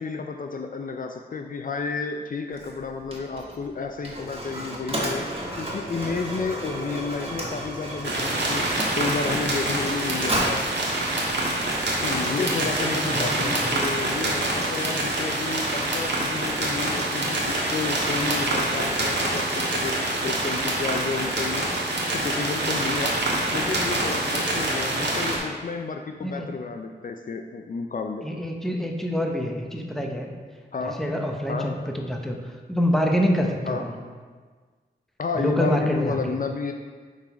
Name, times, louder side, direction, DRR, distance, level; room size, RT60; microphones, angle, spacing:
voice 1, 0.0-8.6 9.0-10.6 12.0-23.2 23.5-28.2 30.7-31.0 31.5-31.7 33.7-33.9 35.2-36.7, left 4 dB, 50° left, 4 dB, 0.4 m, -31 dB
Mechanisms, 2.5-12.2, right 1 dB, 30° right, 1.7 m, -33 dB
sound 1, 8.0-25.4, right 1 dB, 75° right, 1.4 m, -26 dB
voice 2, 12.3-13.8 14.7-15.1 24.7-25.2 26.2-26.5 28.2-30.3 30.8-33.9 35.3-36.4, equal, ahead, 1 dB, 0.9 m, -27 dB
7.2 x 3.9 x 4.7 m, 1.5 s
wide cardioid pair, 70°, 18 cm